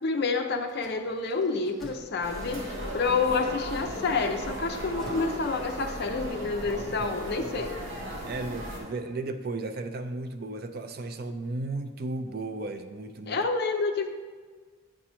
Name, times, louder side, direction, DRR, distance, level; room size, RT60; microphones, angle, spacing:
voice 1, 0.0-7.7 13.3-14.1, left 4 dB, 50° left, 6 dB, 0.5 m, -28 dB
sound 1, 0.7-3.3 4.6-6.4, equal, ahead, 0.7 m, -49 dB
sound 2, 2.2-8.8, equal, 60° right, 1.7 m, -37 dB
voice 2, 6.7-7.1 7.4-7.7 8.3-13.4, right 2 dB, 45° right, 8 dB, 0.4 m, -35 dB
8.6 x 2.9 x 6.1 m, 1.5 s
head